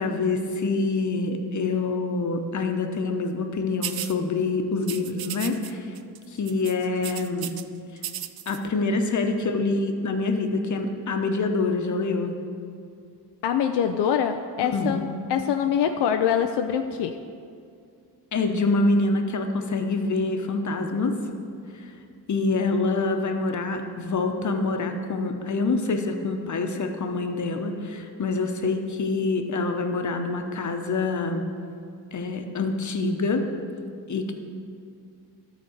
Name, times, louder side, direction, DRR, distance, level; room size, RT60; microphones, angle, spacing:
voice 1, 0.0-5.9 6.3-7.5 8.5-12.4 14.6-15.1 18.3-21.1 22.3-31.4 32.1-33.4 34.1-34.3, left 3 dB, 45° left, 5 dB, 1.0 m, -26 dB
sound 1, 3.8-4.2 4.8-5.7 6.0-6.2 6.5-7.6 8.0-8.6, right 11 dB, 65° right, 0.5 m, -34 dB
voice 2, 13.4-15.0 15.3-17.2, left 8 dB, 80° left, 6 dB, 0.5 m, -24 dB
12.5 x 4.2 x 6.5 m, 2.4 s
cardioid pair, 70°, 40 cm